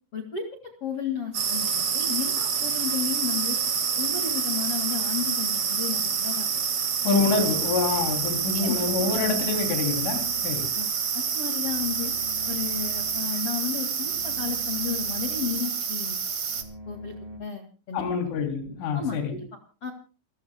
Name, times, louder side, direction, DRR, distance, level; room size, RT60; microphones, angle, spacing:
voice 1, 0.1-3.6 4.0-6.5 8.6-8.8 10.8-12.1 12.5-16.2 16.9-18.3 18.9-19.5 19.8-19.9, left 7 dB, 50° left, 4 dB, 1.7 m, -33 dB
sound 1, 1.3-16.6, right 7 dB, 60° right, 1.5 m, -28 dB
voice 2, 7.0-10.7 17.9-19.4, left 4 dB, 70° left, 4 dB, 5.6 m, -26 dB
sound 2, 7.3-17.4, left 1 dB, 30° right, 5.1 m, -45 dB
29.0 x 14.5 x 2.2 m, 0.37 s
omnidirectional pair, 6.0 m